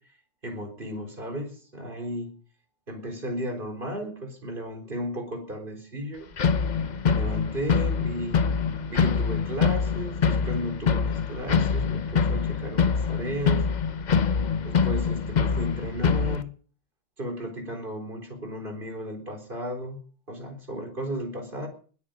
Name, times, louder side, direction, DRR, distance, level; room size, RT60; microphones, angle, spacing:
voice 1, 0.4-2.4 2.9-6.3 7.0-8.4 8.9-13.7 14.6-16.5 17.2-20.0 20.3-21.7, equal, 45° right, 3 dB, 4.2 m, -34 dB
sound 1, 6.4-16.4, left 6 dB, 40° left, 0.8 m, -25 dB
20.5 x 9.9 x 5.1 m, 0.41 s
omnidirectional pair, 1.2 m